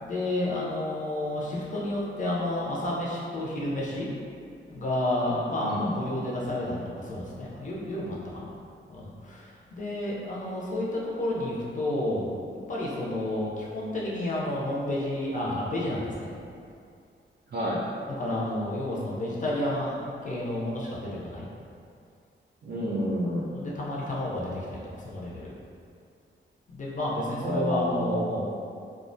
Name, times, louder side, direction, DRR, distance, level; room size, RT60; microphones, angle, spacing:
voice 1, 0.0-4.1 4.7-8.5 8.9-12.3 12.7-16.3 18.2-21.5 23.5-25.5 26.7-28.6, left 1 dB, 40° left, -6 dB, 0.4 m, -31 dB
voice 2, 5.6-5.9 17.5-17.8 22.6-23.5 27.4-28.3, equal, 50° right, -9 dB, 0.4 m, -29 dB
2.3 x 2.1 x 2.5 m, 2.4 s
wide cardioid pair, 145°, 21 cm